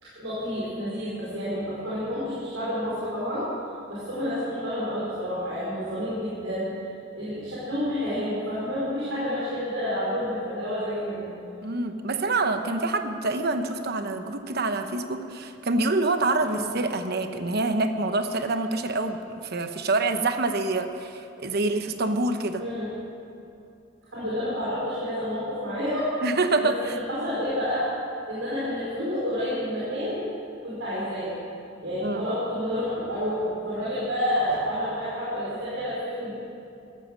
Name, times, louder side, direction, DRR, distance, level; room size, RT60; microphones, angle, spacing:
voice 1, 0.0-3.5 3.9-6.7 7.1-11.3 16.4-16.6 22.6-22.9 24.1-26.2 26.6-27.9 28.3-30.3 30.6-31.4 31.8-36.4, equal, 90° right, -9 dB, 4.6 m, -29 dB
voice 2, 11.6-22.6 26.2-27.0 32.0-32.2, right 2 dB, 55° right, 8 dB, 1.0 m, -26 dB
14.5 x 14.0 x 6.5 m, 2.6 s
head